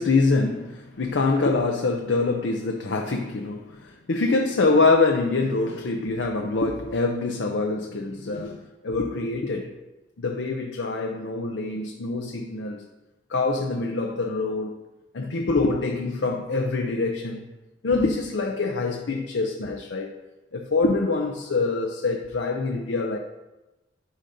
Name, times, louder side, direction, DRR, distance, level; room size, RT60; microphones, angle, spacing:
voice 1, 0.0-9.7 10.2-12.9 13.3-14.8 15.1-17.5 17.8-20.2 20.5-23.2, left 3 dB, 80° left, 3 dB, 0.6 m, -25 dB
11.5 x 5.1 x 2.7 m, 1.1 s
head